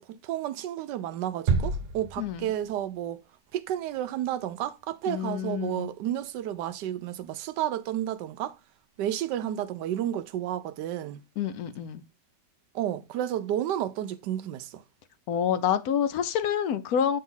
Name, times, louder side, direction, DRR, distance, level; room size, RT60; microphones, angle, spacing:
voice 1, 0.0-3.2 3.5-8.6 9.0-11.2 12.7-14.8, right 11 dB, 85° right, 1.2 m, -31 dB
sound 1, 1.5-2.9, right 4 dB, 55° right, 0.6 m, -29 dB
voice 2, 5.1-5.9 11.4-12.0 15.3-17.2, left 8 dB, 70° left, 1.0 m, -27 dB
7.9 x 2.8 x 5.5 m
omnidirectional pair, 1.8 m